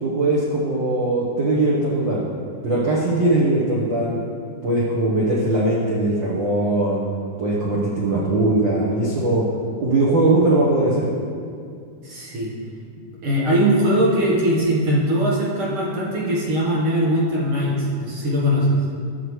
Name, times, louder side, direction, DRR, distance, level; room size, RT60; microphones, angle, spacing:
voice 1, 0.0-2.3 2.6-4.2 4.6-7.0 7.4-9.4 9.8-11.1, right 2 dB, 90° right, -6 dB, 1.0 m, -20 dB
voice 2, 12.0-12.5 13.2-18.8, equal, 55° right, -5 dB, 1.7 m, -20 dB
11.5 x 7.7 x 3.2 m, 2.3 s
omnidirectional pair, 3.8 m